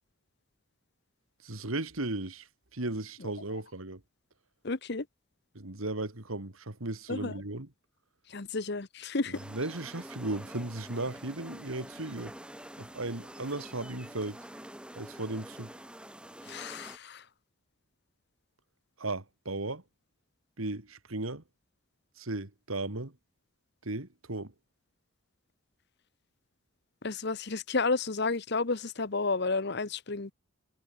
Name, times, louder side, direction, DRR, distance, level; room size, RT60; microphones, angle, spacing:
voice 1, 1.4-2.5 2.7-4.0 5.5-7.7 9.5-12.3 12.8-14.4 15.0-15.7 19.0-19.8 20.6-21.4 22.2-23.1 23.8-24.5, right 2 dB, 80° right, 2.5 m, -36 dB
voice 2, 4.6-5.0 7.1-7.4 8.3-9.4 16.4-17.2 27.0-30.3, left 3 dB, 50° left, 1.0 m, -31 dB
sound 1, 9.3-17.0, right 1 dB, 5° right, 2.0 m, -47 dB
head